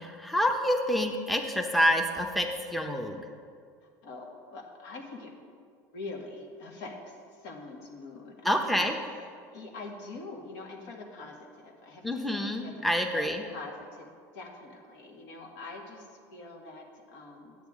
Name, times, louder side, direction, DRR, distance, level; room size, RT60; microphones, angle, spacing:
voice 1, 0.0-3.3 8.4-9.0 12.0-13.4, equal, ahead, 3 dB, 0.7 m, -27 dB
voice 2, 4.0-5.3 5.9-8.9 9.5-12.8 13.1-17.6, left 3 dB, 75° left, 0 dB, 1.7 m, -44 dB
10.5 x 8.2 x 3.6 m, 2.2 s
supercardioid pair, 120°, 9 cm